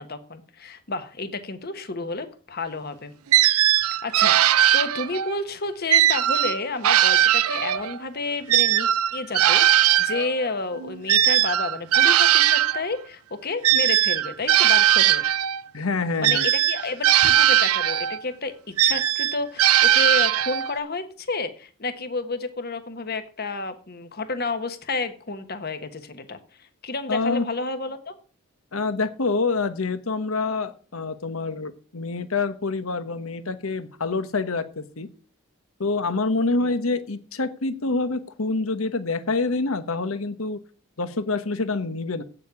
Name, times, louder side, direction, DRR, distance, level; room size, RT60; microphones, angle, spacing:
voice 1, 0.0-3.1 3.4-3.6 3.9-15.2 16.2-18.5 18.8-28.1 36.6-36.7, left 3 dB, 45° left, 10 dB, 1.3 m, -31 dB
sound 1, 3.3-5.3 5.9-8.0 8.5-12.8 13.6-15.6 16.2-18.2 18.8-20.8, right 12 dB, 90° right, 0.5 m, -19 dB
voice 2, 15.7-16.5 27.1-27.5 28.7-35.1 35.8-40.6 41.0-42.2, left 3 dB, 75° left, 12 dB, 1.1 m, -26 dB
8.6 x 7.4 x 8.3 m, 0.41 s
head